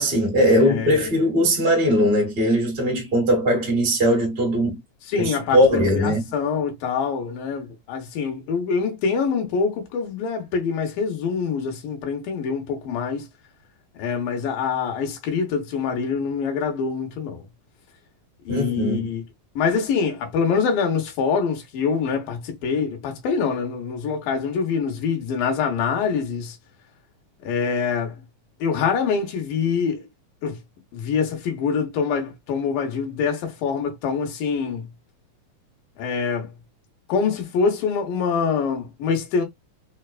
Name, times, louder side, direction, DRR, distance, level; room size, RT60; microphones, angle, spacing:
voice 1, 0.0-4.8 5.2-6.2 18.5-19.0, equal, 35° right, 0.9 m, -20 dB
voice 2, 5.0-13.3 14.0-17.4 18.5-19.2 19.6-26.6 27.4-28.2 28.6-30.0 30.4-30.6 30.9-34.9 36.0-36.5 37.1-39.4, left 6 dB, 85° left, 2.8 m, -25 dB
5.7 x 2.3 x 2.4 m
omnidirectional pair, 3.8 m